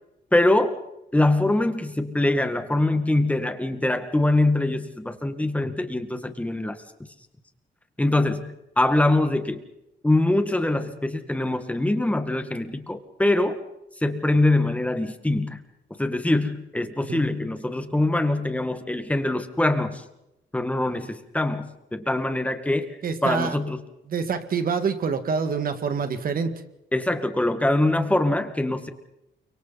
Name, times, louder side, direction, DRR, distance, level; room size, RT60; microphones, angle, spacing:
voice 1, 0.3-0.7 1.1-6.8 8.0-9.6 10.0-13.6 14.0-15.6 16.0-20.0 20.5-22.9 23.2-23.8 26.9-28.9, left 2 dB, 5° left, 8 dB, 1.9 m, -23 dB
voice 2, 23.0-23.6 24.1-26.6, right 5 dB, 50° right, 9 dB, 2.1 m, -26 dB
29.5 x 25.0 x 4.2 m, 0.89 s
wide cardioid pair, 160°, 19 cm